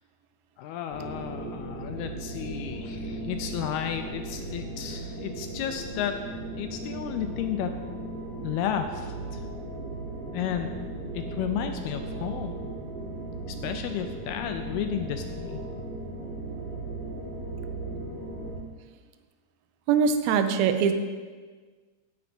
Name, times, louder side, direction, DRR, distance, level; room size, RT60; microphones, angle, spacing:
voice 1, 0.6-6.2 6.6-7.7 8.4-9.4 10.3-10.7 11.1-12.7 13.6-15.6, left 9 dB, 80° left, 7 dB, 2.3 m, -33 dB
sound 1, 0.9-18.5, right 2 dB, 25° right, 3.9 m, -37 dB
voice 2, 19.9-20.9, right 6 dB, 80° right, 8 dB, 2.4 m, -22 dB
16.5 x 9.6 x 3.6 m, 1.5 s
omnidirectional pair, 5.0 m